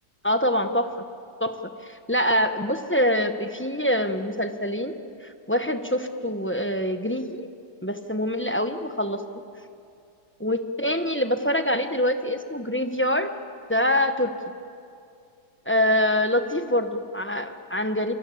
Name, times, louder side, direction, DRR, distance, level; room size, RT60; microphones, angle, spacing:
voice 1, 0.2-0.9 1.4-1.6 2.1-7.5 7.8-9.2 10.4-13.3 13.7-14.3 15.7-18.1, left 1 dB, 10° left, 7 dB, 0.9 m, -25 dB
25.5 x 23.5 x 8.5 m, 2.5 s
omnidirectional pair, 1.8 m